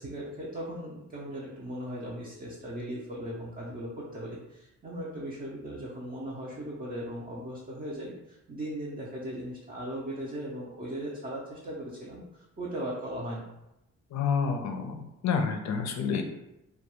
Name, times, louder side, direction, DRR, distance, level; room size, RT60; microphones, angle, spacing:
voice 1, 0.0-13.5, right 1 dB, 30° right, -6 dB, 0.6 m, -38 dB
voice 2, 14.1-16.2, left 6 dB, 65° left, 5 dB, 0.5 m, -29 dB
2.3 x 2.3 x 2.9 m, 0.89 s
cardioid pair, 85°, 30 cm